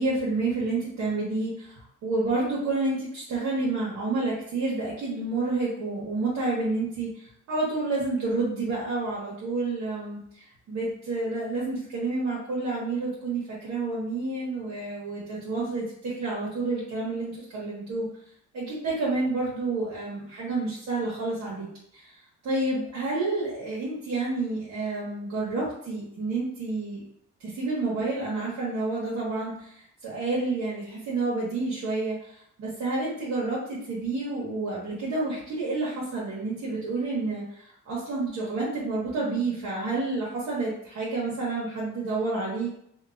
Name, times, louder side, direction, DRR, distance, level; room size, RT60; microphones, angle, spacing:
voice 1, 0.0-1.8 2.0-7.1 7.5-10.2 10.7-18.1 18.5-21.7 22.4-27.0 27.4-29.7 30.0-32.2 32.6-37.4 37.9-42.8, right 3 dB, 65° right, -6 dB, 0.9 m, -29 dB
2.9 x 2.2 x 2.4 m, 0.70 s
cardioid pair, 90°, 30 cm